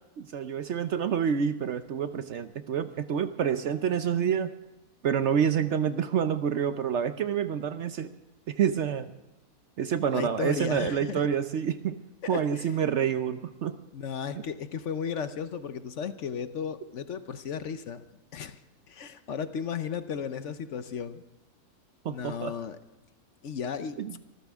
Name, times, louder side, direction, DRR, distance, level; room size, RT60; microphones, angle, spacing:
voice 1, 0.2-4.5 5.0-8.1 8.5-9.1 9.8-12.0 12.3-13.8 22.0-22.5 24.0-24.1, right 8 dB, 60° right, 11 dB, 0.8 m, -28 dB
voice 2, 10.1-11.2 12.2-12.7 13.9-18.0 18.3-18.6 18.9-21.2 22.1-22.8 23.4-24.0, left 7 dB, 60° left, 11 dB, 1.0 m, -34 dB
25.0 x 14.0 x 3.5 m, 1.0 s
omnidirectional pair, 1.6 m